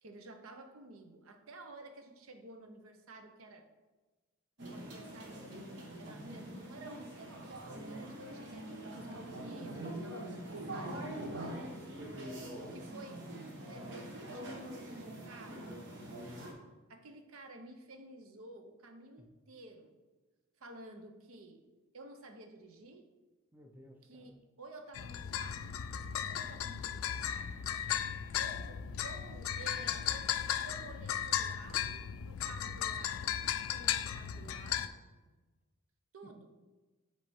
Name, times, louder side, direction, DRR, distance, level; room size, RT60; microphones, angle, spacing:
voice 1, 0.0-3.7 4.6-11.7 12.7-13.2 13.7-15.9 16.9-20.0 20.6-21.6 21.9-23.0 24.0-25.9 26.2-27.5 28.4-35.0 36.1-36.5, right 2 dB, 85° right, 5 dB, 0.8 m, -52 dB
sound 1, 4.6-16.5, right 1 dB, 60° right, 1.2 m, -44 dB
voice 2, 12.1-12.7 19.2-19.3 23.5-24.4 35.3-35.4 36.2-36.5, equal, 10° right, 2 dB, 0.5 m, -58 dB
sound 2, 24.9-34.9, left 9 dB, 85° left, 0.4 m, -36 dB
7.8 x 3.4 x 4.3 m, 1.2 s
head